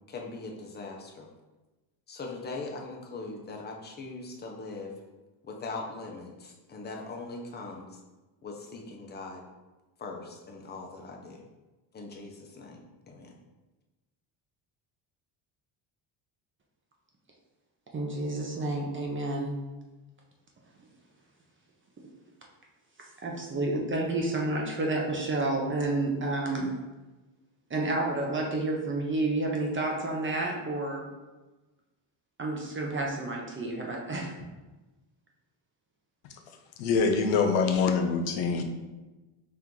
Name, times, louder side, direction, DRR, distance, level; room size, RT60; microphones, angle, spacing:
voice 1, 0.1-1.3 2.1-4.9 5.4-7.9 8.4-9.4 10.0-11.4 11.9-12.8 13.1-13.3, left 3 dB, 20° left, 1 dB, 0.5 m, -40 dB
voice 2, 17.9-19.6 23.0-26.7 27.7-31.1 32.4-34.3, right 2 dB, 25° right, -1 dB, 0.5 m, -30 dB
voice 3, 36.8-38.6, left 5 dB, 75° left, 5 dB, 0.7 m, -24 dB
4.4 x 2.5 x 3.6 m, 1.1 s
cardioid pair, 135°, 49 cm